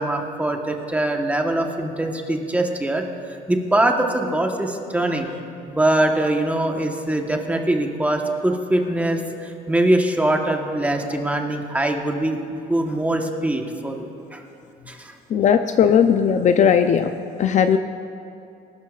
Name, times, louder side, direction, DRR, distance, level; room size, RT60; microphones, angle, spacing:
voice 1, 0.0-5.3 5.7-14.4 14.9-15.1, right 1 dB, 10° right, 2 dB, 1.2 m, -23 dB
voice 2, 15.3-17.1 17.4-17.8, left 7 dB, 45° left, 8 dB, 0.5 m, -17 dB
20.5 x 12.5 x 2.5 m, 2.6 s
cardioid pair, 110°, 17 cm